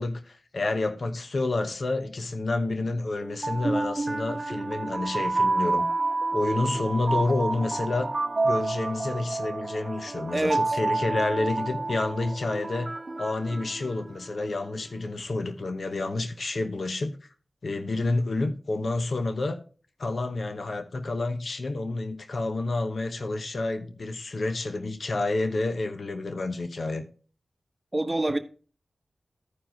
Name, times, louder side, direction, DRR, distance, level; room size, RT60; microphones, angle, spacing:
voice 1, 0.0-5.9 6.3-8.1 8.4-17.2 17.6-19.6 20.0-27.0, left 2 dB, 65° left, 0.9 m, -29 dB
sound 1, 3.2-14.3, right 3 dB, 45° right, 0.7 m, -29 dB
voice 2, 10.3-10.8 27.9-28.4, right 1 dB, 25° right, 1.2 m, -26 dB
14.0 x 4.7 x 4.5 m
cardioid pair, 50°, 0 cm